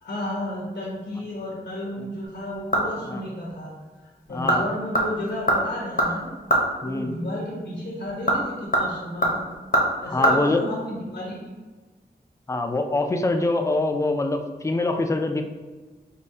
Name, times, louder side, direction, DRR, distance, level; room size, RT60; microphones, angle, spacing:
voice 1, 0.0-3.7 4.3-6.3 6.8-9.5 10.0-11.5, left 1 dB, 80° left, -4 dB, 1.0 m, -32 dB
sound 1, 2.2-3.1 3.5-3.6 4.2-4.6 4.9-6.7 8.0-10.3 10.6-10.7, right 1 dB, 55° left, 0.8 m, -23 dB
voice 2, 4.3-4.6 6.8-7.1 10.1-10.6 12.5-15.4, left 2 dB, 15° left, 5 dB, 0.3 m, -24 dB
5.1 x 2.2 x 2.7 m, 1.3 s
wide cardioid pair, 80°, 17 cm